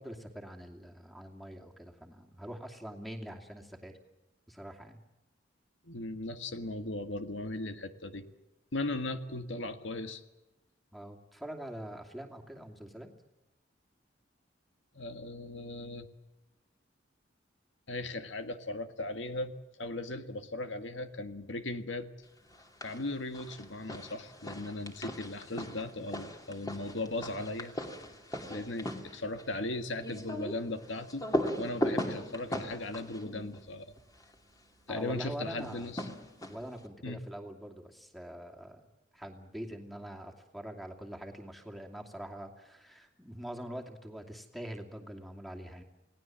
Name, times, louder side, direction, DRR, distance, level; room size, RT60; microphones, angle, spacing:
voice 1, 0.0-3.9 4.5-5.0 10.9-13.1 34.9-36.0 36.5-38.8 39.1-45.8, equal, ahead, 4 dB, 2.6 m, -44 dB
voice 2, 5.8-8.3 8.7-10.2 14.9-16.1 17.9-22.1 22.8-27.7 28.5-31.3 31.6-33.9 34.9-36.1 37.0-37.2, left 2 dB, 80° left, 9 dB, 1.7 m, -38 dB
sound 1, 22.5-23.0 23.3-34.3 35.6-36.8, left 1 dB, 20° left, 2.5 m, -38 dB
29.0 x 18.5 x 7.6 m, 1.0 s
head